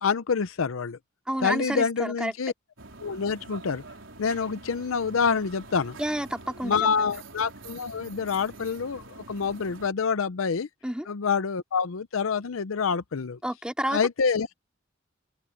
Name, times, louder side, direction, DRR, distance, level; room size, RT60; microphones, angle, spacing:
voice 1, 0.0-1.0 1.4-2.5 3.0-3.8 4.2-6.0 6.6-10.7 11.1-13.4 13.9-14.5, left 5 dB, 85° left, 0.6 m, -27 dB
voice 2, 1.3-2.3 6.0-7.1 10.8-11.1 13.4-14.0, right 1 dB, 5° right, 2.3 m, -30 dB
sound 1, 2.8-9.9, right 3 dB, 70° right, 4.4 m, -45 dB
open air
head